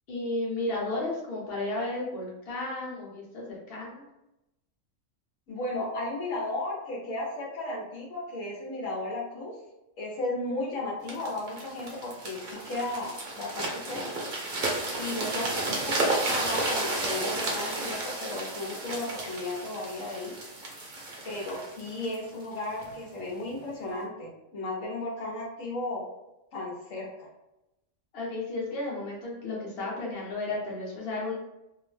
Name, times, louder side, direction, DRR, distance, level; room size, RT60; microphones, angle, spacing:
voice 1, 0.1-4.0 28.1-31.4, left 2 dB, 50° left, -4 dB, 1.0 m, -33 dB
voice 2, 5.5-9.6 10.0-14.3 15.0-20.4 21.2-26.1 26.5-27.1, left 2 dB, 80° left, -2 dB, 1.1 m, -34 dB
sound 1, 11.1-22.9 23.5-23.7, right 2 dB, 50° right, 0.8 m, -32 dB
2.7 x 2.0 x 3.1 m, 0.92 s
omnidirectional pair, 1.3 m